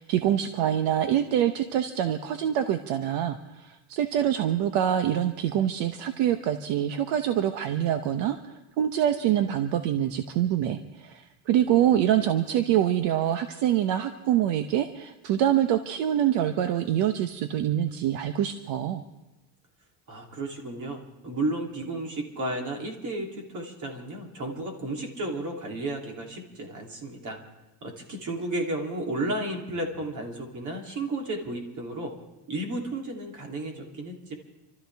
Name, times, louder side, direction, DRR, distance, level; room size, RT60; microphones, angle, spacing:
voice 1, 0.0-19.0, right 10 dB, 70° right, 8 dB, 1.0 m, -25 dB
voice 2, 20.1-27.4 27.8-32.1 32.5-34.3, right 2 dB, 40° right, 1 dB, 3.2 m, -33 dB
28.5 x 13.5 x 3.5 m, 1.0 s
cardioid pair, 135°, 46 cm